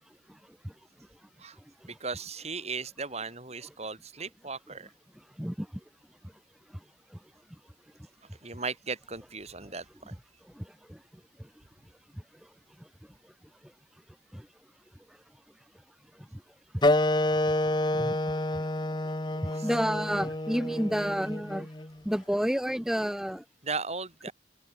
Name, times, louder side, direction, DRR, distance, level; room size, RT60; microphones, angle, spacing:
voice 1, 1.9-4.9 8.2-10.1 19.5-19.8 20.5-20.6 23.6-24.3, right 4 dB, 35° right, 6.5 m, -37 dB
voice 2, 10.6-11.0 14.3-14.5 17.9-18.2 18.5-18.6 19.4-21.7 22.0-23.4, equal, 5° right, 0.6 m, -30 dB
Wind instrument woodwind instrument, 16.8-21.9, left 1 dB, 25° left, 1.4 m, -28 dB
open air
head